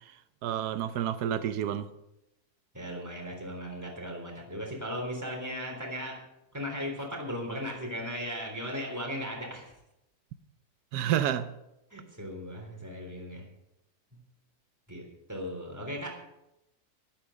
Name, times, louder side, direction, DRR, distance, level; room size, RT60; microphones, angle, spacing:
voice 1, 0.4-1.9 10.9-11.5, right 10 dB, 90° right, 1.2 m, -29 dB
voice 2, 2.7-6.2 6.5-9.7 11.9-13.4 14.9-15.0 15.3-16.2, equal, 10° right, 3.8 m, -37 dB
12.5 x 12.0 x 6.4 m
omnidirectional pair, 1.6 m